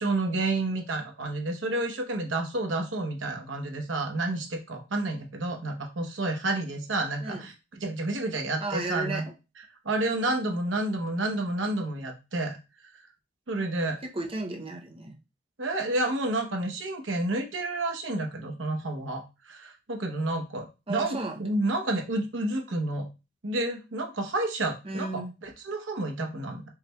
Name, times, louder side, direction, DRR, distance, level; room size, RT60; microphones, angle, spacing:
voice 1, 0.0-7.5 7.8-9.3 9.8-12.6 13.5-14.0 15.6-23.1 23.4-26.7, right 2 dB, 85° right, 3 dB, 1.0 m, -30 dB
voice 2, 8.6-9.3 14.0-15.2 20.9-21.5 24.8-25.3, right 2 dB, 30° right, 3 dB, 0.6 m, -34 dB
4.7 x 3.2 x 2.3 m, 0.28 s
head